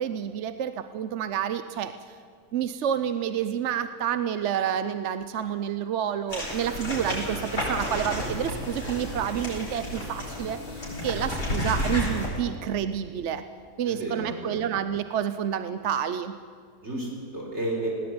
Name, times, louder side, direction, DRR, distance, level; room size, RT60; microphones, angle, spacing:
voice 1, 0.0-1.9 2.5-13.4 13.8-16.3, right 9 dB, 60° right, 11 dB, 0.8 m, -29 dB
sound 1, 6.3-12.3, left 1 dB, 60° left, 8.0 m, -31 dB
voice 2, 13.8-14.7 16.8-17.9, right 1 dB, 40° right, 0 dB, 5.0 m, -32 dB
20.0 x 17.5 x 9.5 m, 2.1 s
omnidirectional pair, 1.8 m